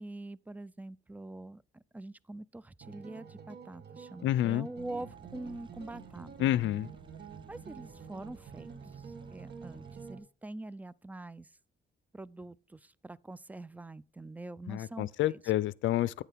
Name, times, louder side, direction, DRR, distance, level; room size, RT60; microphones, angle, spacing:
voice 1, 0.0-6.6 7.5-11.5 12.1-15.4, right 2 dB, 10° right, 0.3 m, -45 dB
sound 1, 2.8-10.2, right 6 dB, 55° right, 1.6 m, -48 dB
voice 2, 4.2-4.7 6.4-6.9 14.7-16.2, left 13 dB, 75° left, 0.5 m, -29 dB
sound 2, 4.7-10.1, right 5 dB, 25° right, 0.7 m, -55 dB
10.0 x 8.1 x 3.5 m
cardioid pair, 90°, 20 cm